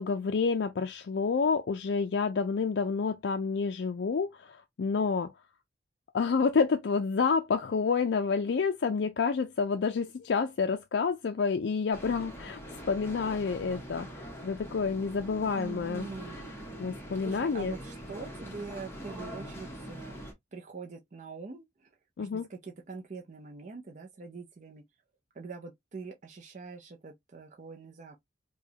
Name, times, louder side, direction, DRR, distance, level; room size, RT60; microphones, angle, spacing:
voice 1, 0.0-5.3 6.1-12.6 12.9-16.1 16.8-17.7 22.2-22.5, left 5 dB, 65° left, 0.4 m, -29 dB
sound 1, 11.9-20.3, equal, 15° left, 1.1 m, -43 dB
voice 2, 15.5-16.5 17.2-20.3 20.5-21.9 22.2-24.8 25.3-28.2, right 4 dB, 40° right, 0.5 m, -44 dB
4.8 x 2.2 x 2.7 m
head